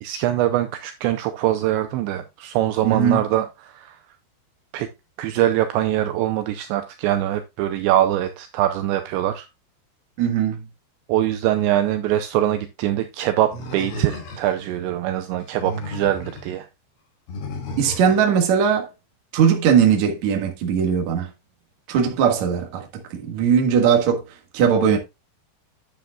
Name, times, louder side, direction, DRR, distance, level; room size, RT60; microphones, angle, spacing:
voice 1, 0.0-4.0 4.7-4.9 5.2-9.5 11.1-16.7, right 13 dB, 80° right, 2.7 m, -23 dB
voice 2, 2.8-3.2 10.2-10.6 17.8-18.9 19.3-21.3 21.9-24.2 24.5-25.0, right 7 dB, 55° right, 2.1 m, -19 dB
Animal, 13.5-14.7 15.4-16.5 17.3-18.3, left 1 dB, 75° left, 6.1 m, -33 dB
10.0 x 9.1 x 2.3 m
omnidirectional pair, 5.6 m